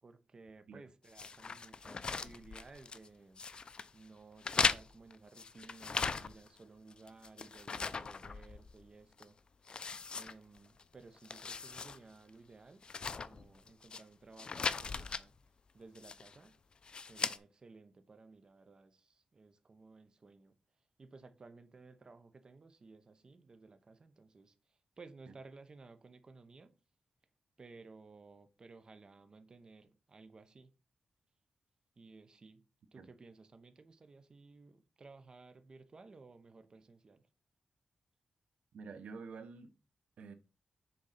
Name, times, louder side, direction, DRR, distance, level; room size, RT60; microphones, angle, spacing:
voice 1, 0.0-3.4 3.9-9.4 10.1-12.8 13.3-15.4 15.7-16.6 17.0-20.5 21.0-26.7 27.6-30.7 32.0-32.6 32.9-37.2, right 3 dB, 40° right, 0.8 m, -57 dB
sound 1, 1.1-3.1 3.4-3.9 4.4-6.6 6.9-8.8 9.2-9.3 9.7-10.8 11.2-12.0 12.3-12.4 12.8-14.0 14.4-15.2 15.9-16.4 16.8-17.4, left 5 dB, 45° left, 0.5 m, -38 dB
voice 2, 38.7-39.7 40.2-40.3, right 5 dB, 90° right, 0.8 m, -48 dB
6.6 x 3.9 x 5.7 m
wide cardioid pair, 115°, 2 cm